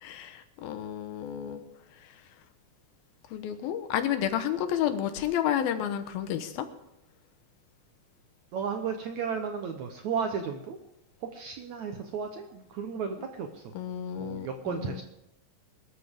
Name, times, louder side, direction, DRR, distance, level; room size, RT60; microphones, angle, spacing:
voice 1, 0.0-1.6 2.0-2.2 3.3-6.7 13.7-15.0, left 10 dB, 80° left, 9 dB, 2.8 m, -31 dB
voice 2, 8.5-10.8 11.2-13.6 14.2-15.0, right 6 dB, 70° right, 5 dB, 1.8 m, -34 dB
22.0 x 13.0 x 3.6 m, 0.83 s
omnidirectional pair, 4.4 m